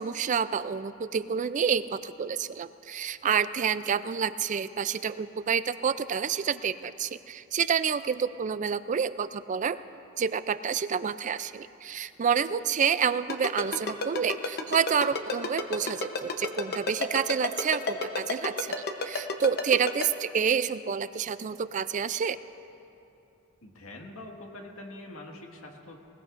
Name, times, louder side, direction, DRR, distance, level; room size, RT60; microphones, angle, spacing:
voice 1, 0.0-9.8 10.2-22.4, right 7 dB, 35° right, 14 dB, 0.4 m, -28 dB
Ringtone, 13.3-20.1, left 4 dB, 50° left, 0.9 m, -30 dB
voice 2, 23.6-26.0, left 1 dB, 80° left, 1 dB, 1.8 m, -44 dB
20.5 x 20.0 x 2.6 m, 2.8 s
head